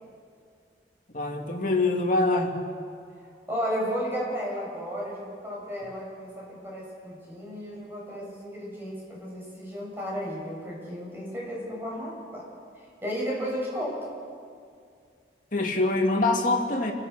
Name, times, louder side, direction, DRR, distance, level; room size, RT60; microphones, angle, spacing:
voice 1, 1.1-2.6 15.5-16.9, left 2 dB, 45° left, 2 dB, 2.4 m, -24 dB
voice 2, 3.5-12.5 12.8-14.0, equal, 10° right, -4 dB, 7.1 m, -33 dB
29.0 x 17.0 x 6.7 m, 2.2 s
head